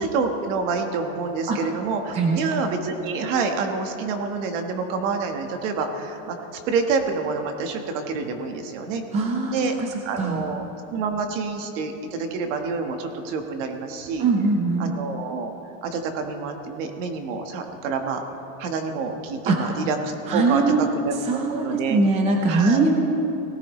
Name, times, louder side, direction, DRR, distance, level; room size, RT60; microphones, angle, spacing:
voice 1, 0.0-6.4 6.7-9.0 9.5-9.7 10.0-10.6 10.9-14.3 14.8-15.5 15.8-18.2 18.6-20.0 20.3-22.0 22.5-22.8, right 4 dB, 55° right, 4 dB, 1.5 m, -27 dB
voice 2, 9.1-9.9 10.2-10.5 14.2-14.9 19.5-19.6 20.3-20.8 21.3-22.9, right 3 dB, 15° right, 1 dB, 0.7 m, -21 dB
18.5 x 16.5 x 3.2 m, 2.9 s
supercardioid pair, 180°, 44 cm